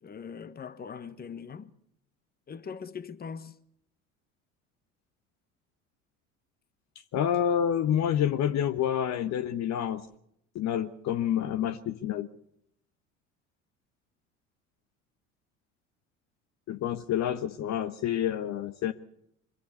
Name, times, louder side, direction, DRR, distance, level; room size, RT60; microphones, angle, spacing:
voice 1, 0.0-1.7 2.5-3.5, left 6 dB, 25° left, 1.2 m, -41 dB
voice 2, 7.1-10.1 10.5-12.3 16.7-18.9, left 9 dB, 45° left, 1.1 m, -28 dB
23.5 x 15.5 x 8.2 m
hypercardioid pair, 65°, 38 cm